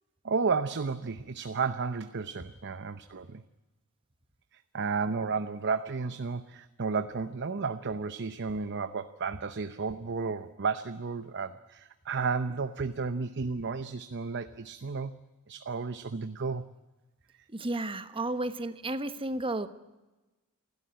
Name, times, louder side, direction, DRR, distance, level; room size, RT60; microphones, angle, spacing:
voice 1, 0.2-3.4 4.5-15.1 15.5-16.6, right 4 dB, 50° right, 11 dB, 0.8 m, -32 dB
voice 2, 17.5-19.7, right 2 dB, 25° right, 11 dB, 1.1 m, -32 dB
28.5 x 12.0 x 10.0 m, 1.1 s
head